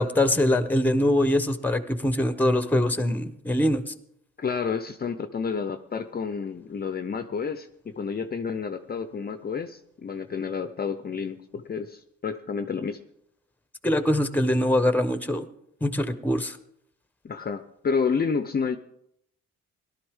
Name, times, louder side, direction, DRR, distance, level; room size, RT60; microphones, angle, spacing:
voice 1, 0.0-3.9 13.8-15.5 15.8-16.6, left 1 dB, 5° left, 11 dB, 0.9 m, -23 dB
voice 2, 4.4-7.7 7.9-13.0 17.2-18.8, left 5 dB, 30° left, 9 dB, 0.6 m, -30 dB
17.5 x 12.0 x 3.6 m, 0.76 s
cardioid pair, 90°, 30 cm